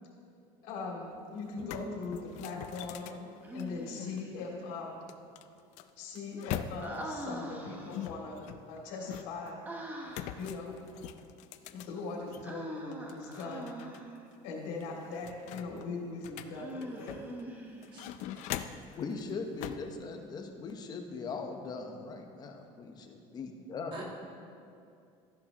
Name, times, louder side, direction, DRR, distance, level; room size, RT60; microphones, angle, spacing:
voice 1, 0.6-5.0 6.0-8.4 8.7-9.6 10.4-10.8 11.7-13.7 14.4-17.2, left 3 dB, 90° left, -1 dB, 2.5 m, -40 dB
sound 1, 1.0-1.1 1.4-4.2 5.1-7.1 7.9-9.5 10.1-12.5 12.9-14.0 14.3-14.4 14.8-17.4 17.8-18.9 19.6-19.9, left 11 dB, 65° left, 0.4 m, -42 dB
Human voice, 3.4-4.3 6.8-8.2 9.6-10.4 12.4-14.2 16.5-18.1, right 1 dB, 15° right, 0.9 m, -43 dB
voice 2, 17.9-18.4 23.9-24.0, right 4 dB, 40° right, -2 dB, 1.5 m, -47 dB
voice 3, 18.9-24.0, left 4 dB, 30° left, 4 dB, 0.9 m, -40 dB
13.5 x 10.5 x 3.0 m, 2.5 s
cardioid pair, 155°, 13 cm